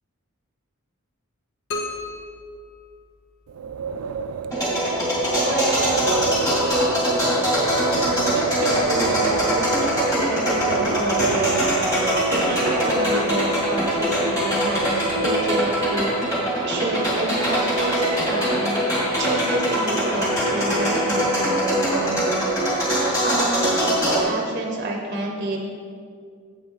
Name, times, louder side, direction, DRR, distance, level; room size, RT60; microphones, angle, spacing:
sound 1, 1.7-3.6, left 2 dB, 60° left, 1.1 m, -34 dB
Wind, 3.5-16.1, right 5 dB, 75° right, 0.4 m, -30 dB
sound 2, 4.5-24.2, equal, 15° left, 2.2 m, -22 dB
voice 1, 5.4-6.5 8.0-11.7 12.3-16.2 16.6-22.2 23.2-25.7, right 2 dB, 40° right, 1 dB, 0.7 m, -29 dB
8.0 x 7.9 x 3.9 m, 2.2 s
head